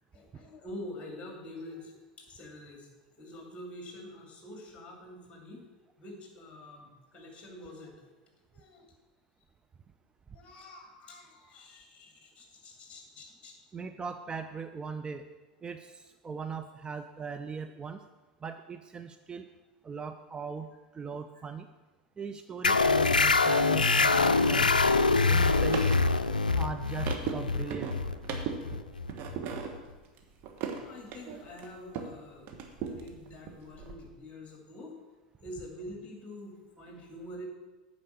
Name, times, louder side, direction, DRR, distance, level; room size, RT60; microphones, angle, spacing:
voice 1, 0.1-2.9 3.2-5.7 6.0-8.1 8.5-8.9 10.3-13.6 21.3-21.4 30.8-35.0 35.4-37.5, left 1 dB, 30° left, 2 dB, 2.7 m, -46 dB
voice 2, 13.7-15.2 15.6-18.0 18.4-19.4 19.8-20.7 20.9-21.7 22.2-24.7 25.3-25.8 26.6-27.9, right 5 dB, 20° right, 7 dB, 0.5 m, -39 dB
sound 1, 22.6-29.8, left 3 dB, 90° left, 0.4 m, -25 dB
sound 2, 25.4-32.2 32.5-33.9, right 6 dB, 45° right, 1.4 m, -39 dB
8.9 x 5.3 x 6.6 m, 1.2 s
figure-of-eight pair, 85°, 4 cm